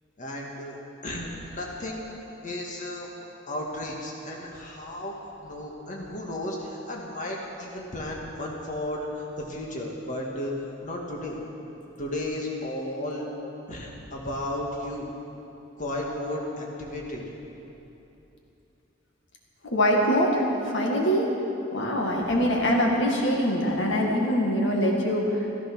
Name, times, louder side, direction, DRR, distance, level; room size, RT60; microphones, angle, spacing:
voice 1, 0.2-0.8 1.0-3.1 3.5-11.4 12.0-13.3 13.7-15.1 15.8-17.2, left 1 dB, 40° left, -2 dB, 1.9 m, -34 dB
voice 2, 19.7-21.3 21.7-25.5, equal, 65° left, -1 dB, 1.9 m, -23 dB
15.0 x 14.5 x 6.2 m, 2.9 s
head